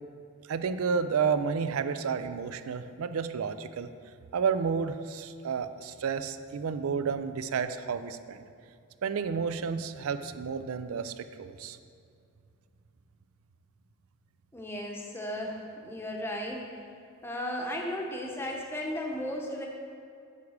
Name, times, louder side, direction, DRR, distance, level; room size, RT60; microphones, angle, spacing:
voice 1, 0.5-3.9 4.3-8.4 9.0-11.8, right 6 dB, 75° right, 11 dB, 0.4 m, -31 dB
voice 2, 14.5-16.7 17.2-19.7, left 1 dB, 10° left, 0 dB, 0.8 m, -35 dB
9.5 x 3.5 x 6.4 m, 2.4 s
head